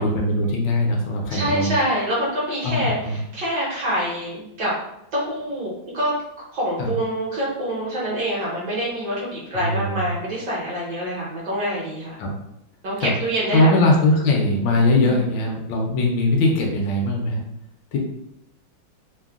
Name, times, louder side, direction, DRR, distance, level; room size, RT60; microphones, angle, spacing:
voice 1, 0.0-1.7 2.6-3.2 6.8-6.9 9.5-10.1 12.2-12.4 13.0-13.1 13.5-17.4 17.9-18.0, left 2 dB, 75° left, 0 dB, 1.2 m, -21 dB
voice 2, 1.3-4.7 5.1-6.1 6.5-12.1 12.8-13.7 15.0-15.2, equal, 65° right, -6 dB, 1.2 m, -26 dB
3.6 x 2.0 x 2.3 m, 0.81 s
omnidirectional pair, 2.3 m